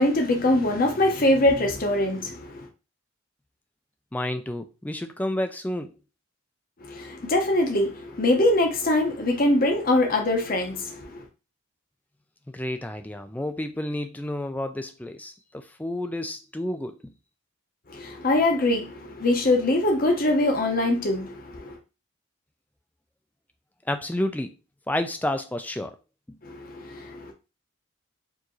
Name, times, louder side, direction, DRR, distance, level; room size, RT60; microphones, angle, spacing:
voice 1, 0.0-2.7 6.8-11.2 17.9-21.8 26.4-27.3, left 1 dB, 40° left, 0.7 m, -23 dB
voice 2, 4.1-5.9 12.5-17.1 23.9-24.5 24.9-26.0, left 1 dB, 5° left, 0.3 m, -30 dB
4.5 x 2.6 x 3.0 m
head